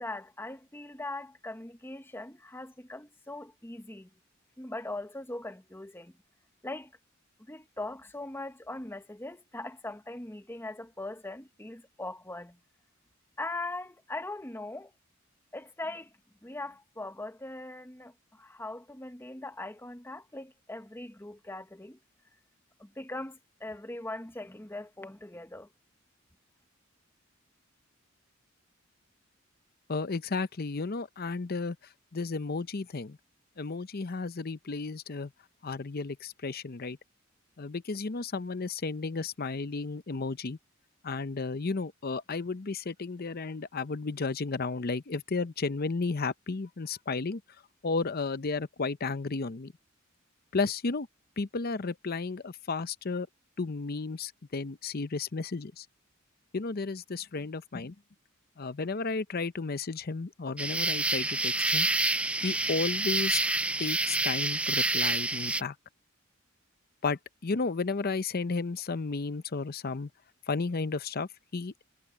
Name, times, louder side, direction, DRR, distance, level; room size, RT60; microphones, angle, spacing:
voice 1, 0.0-4.1 4.6-6.1 6.6-6.9 7.5-12.6 13.4-14.9 15.5-16.1 16.4-22.0 22.8-25.7, left 2 dB, 10° left, 1.1 m, -40 dB
voice 2, 29.9-31.8 32.1-33.2 33.6-35.3 35.6-37.0 37.6-40.6 41.0-47.4 47.8-49.7 50.5-51.1 51.4-53.3 53.6-55.9 56.5-57.9 58.6-61.9 62.4-63.4 63.8-65.7 67.0-70.1 70.5-71.7, left 4 dB, 45° left, 0.7 m, -33 dB
sound 1, 60.6-65.6, right 2 dB, 5° right, 0.4 m, -28 dB
head